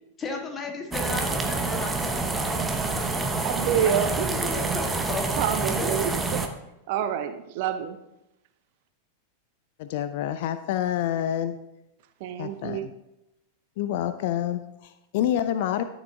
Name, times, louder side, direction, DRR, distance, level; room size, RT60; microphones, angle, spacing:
voice 1, 0.2-2.6 2.9-3.0 3.8-5.4 5.8-6.3, left 3 dB, 20° left, 2 dB, 1.8 m, -35 dB
sound 1, 0.9-6.5, right 3 dB, 10° right, 0.9 m, -27 dB
voice 2, 3.4-4.3 5.4-6.4 6.9-8.0 12.2-12.9, right 9 dB, 50° right, 10 dB, 0.6 m, -27 dB
voice 3, 9.8-11.6 12.4-12.9 13.8-15.8, left 11 dB, 50° left, 11 dB, 0.4 m, -28 dB
13.0 x 7.1 x 3.7 m, 0.88 s
figure-of-eight pair, 90°, 0 cm